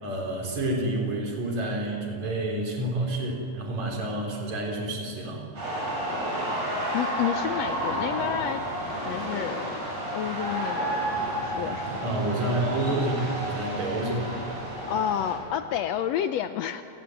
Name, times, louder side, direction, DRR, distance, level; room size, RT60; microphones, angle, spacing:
voice 1, 0.0-5.4 12.0-14.4, right 1 dB, 65° right, 1 dB, 4.8 m, -29 dB
sound 1, 5.6-15.3, right 1 dB, 85° right, 9.1 m, -31 dB
voice 2, 6.9-8.7 9.0-9.7 10.1-11.9 14.9-16.8, left 10 dB, 75° left, 10 dB, 1.6 m, -30 dB
28.5 x 19.0 x 7.8 m, 2.8 s
omnidirectional pair, 3.4 m